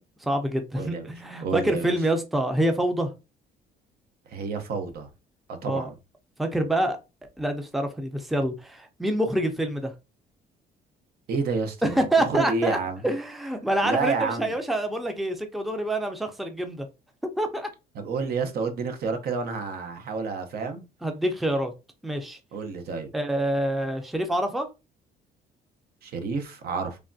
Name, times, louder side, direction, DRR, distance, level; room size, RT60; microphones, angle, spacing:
voice 1, 0.2-3.1 5.6-5.9 6.4-7.0 7.4-9.9 11.8-12.8 13.0-16.9 17.4-17.7 21.0-21.7 22.0-22.4 23.1-24.7, right 1 dB, ahead, 0.5 m, -26 dB
voice 2, 0.7-1.1 1.4-1.9 4.3-5.1 5.6-5.9 11.3-13.1 13.8-14.5 17.9-20.8 22.5-23.1 26.0-27.0, right 4 dB, 65° right, 0.7 m, -29 dB
3.3 x 2.3 x 2.5 m
cardioid pair, 110°, 17 cm